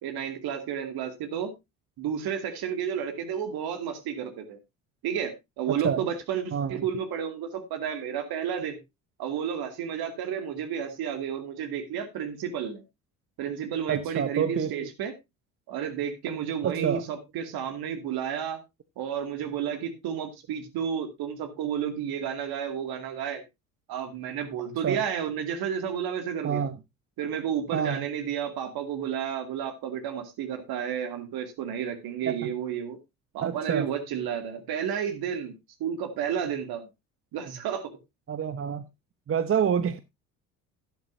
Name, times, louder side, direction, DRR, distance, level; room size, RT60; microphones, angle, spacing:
voice 1, 0.0-1.5 2.0-4.6 5.0-8.8 9.2-12.8 13.4-15.1 15.7-18.6 19.0-23.4 23.9-26.7 27.2-33.0 33.3-36.9 37.3-37.9, right 8 dB, 60° right, 2.4 m, -31 dB
voice 2, 6.5-6.9 13.9-14.9 16.6-17.1 24.8-25.0 26.4-26.8 27.7-28.1 32.3-32.5 33.4-33.9 38.3-38.8 39.3-40.0, right 8 dB, 35° right, 0.9 m, -27 dB
11.5 x 11.0 x 2.7 m
hypercardioid pair, 60°, 41 cm